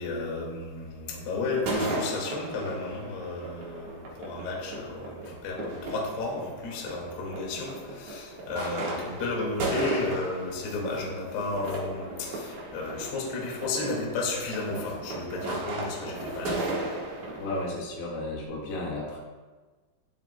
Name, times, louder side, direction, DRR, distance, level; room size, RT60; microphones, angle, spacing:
voice 1, 0.0-16.7, left 3 dB, 60° left, -2 dB, 3.8 m, -33 dB
sound 1, 1.5-17.6, right 2 dB, 60° right, 1.9 m, -36 dB
voice 2, 17.4-19.2, left 2 dB, 85° left, -4 dB, 4.4 m, -33 dB
20.0 x 7.5 x 2.2 m, 1.3 s
omnidirectional pair, 5.6 m